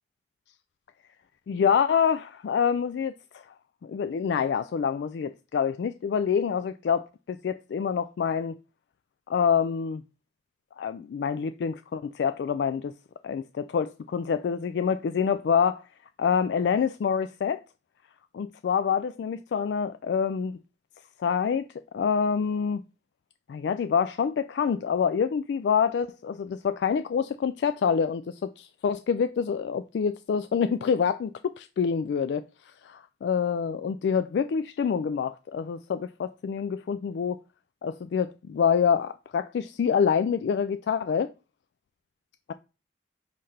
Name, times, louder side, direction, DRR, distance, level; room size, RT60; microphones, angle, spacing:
voice 1, 1.5-3.4 3.8-8.5 9.3-10.0 10.8-12.9 13.2-15.8 16.2-17.6 18.3-20.6 21.2-21.7 21.9-22.8 23.5-32.4 32.8-37.4 37.8-41.3, left 6 dB, 80° left, 0.3 m, -26 dB
5.6 x 5.5 x 3.3 m
head